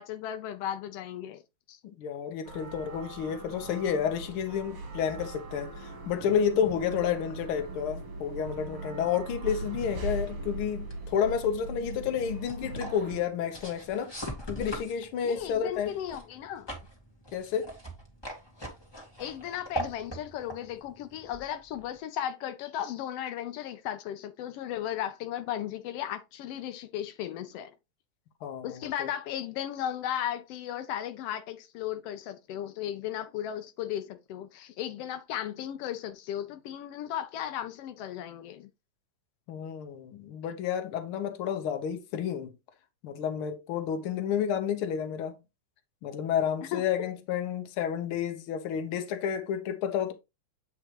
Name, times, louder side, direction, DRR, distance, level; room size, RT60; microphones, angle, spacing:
voice 1, 0.0-1.4 1.7-1.8 15.2-16.7 19.2-27.8 28.6-38.7 46.7-46.8, left 11 dB, 90° left, 1.3 m, -35 dB
voice 2, 2.0-14.1 14.5-15.9 17.3-17.7 28.4-29.1 39.5-42.5 43.0-45.4 46.0-50.1, left 8 dB, 65° left, 1.4 m, -30 dB
sound 1, 2.4-13.2, right 2 dB, 55° right, 2.1 m, -40 dB
sound 2, 10.9-22.0, right 1 dB, 10° left, 1.2 m, -42 dB
8.3 x 4.9 x 3.0 m
omnidirectional pair, 3.4 m